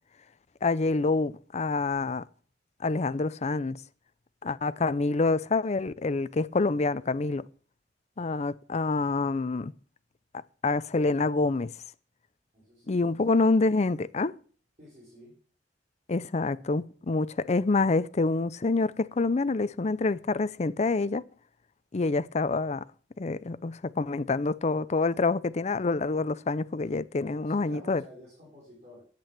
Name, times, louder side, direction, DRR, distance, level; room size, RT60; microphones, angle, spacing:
voice 1, 0.6-2.2 2.8-3.8 4.4-7.4 8.2-9.7 10.6-11.7 12.9-14.3 16.1-21.2 21.9-22.8 23.2-28.0, left 3 dB, 40° left, 0.5 m, -27 dB
voice 2, 12.5-13.4 14.8-15.4 27.3-29.1, left 1 dB, 40° right, 4.7 m, -51 dB
10.5 x 8.5 x 6.0 m
head